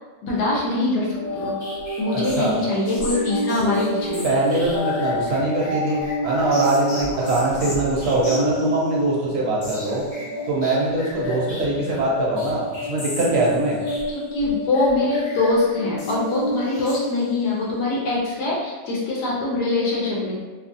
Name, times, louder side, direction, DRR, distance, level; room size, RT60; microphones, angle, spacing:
voice 1, 0.2-1.1 1.3-1.6 2.0-4.3 14.1-20.4, left 2 dB, 70° left, -4 dB, 1.1 m, -23 dB
sound 1, 1.1-17.5, equal, 50° left, 1.3 m, -29 dB
voice 2, 2.1-2.5 4.2-10.0 10.5-13.8, right 2 dB, 70° right, -4 dB, 1.1 m, -22 dB
2.9 x 2.3 x 2.5 m, 1.3 s
omnidirectional pair, 1.9 m